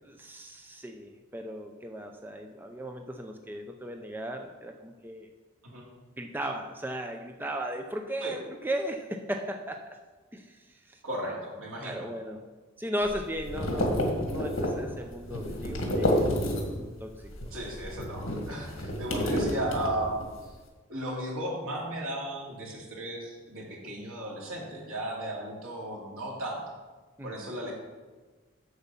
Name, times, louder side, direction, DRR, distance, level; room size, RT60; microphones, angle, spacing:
voice 1, 0.0-5.3 6.2-9.9 10.3-11.0 11.3-11.4 11.8-12.4 12.8-17.5 24.0-24.1 27.2-27.5, equal, 10° right, 4 dB, 0.5 m, -37 dB
voice 2, 11.0-12.1 17.5-20.3 20.9-26.6 27.2-27.7, right 1 dB, 80° right, -3 dB, 2.5 m, -35 dB
sound 1, 13.0-16.9 17.2-20.3, equal, 75° left, 1.8 m, -30 dB
8.1 x 7.0 x 5.5 m, 1.3 s
head